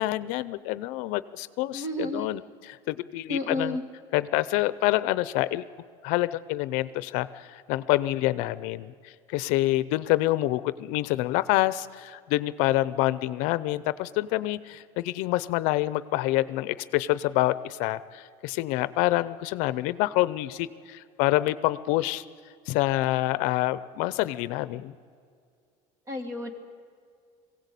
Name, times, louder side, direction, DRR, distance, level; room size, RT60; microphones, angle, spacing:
voice 1, 0.0-3.8 4.1-5.6 6.0-22.2 22.7-24.9, left 17 dB, 75° left, 16 dB, 0.6 m, -27 dB
voice 2, 1.7-2.3 3.3-3.8 26.1-26.5, left 1 dB, 25° right, 7 dB, 1.9 m, -31 dB
21.5 x 16.5 x 8.4 m, 2.3 s
cardioid pair, 160°, 13 cm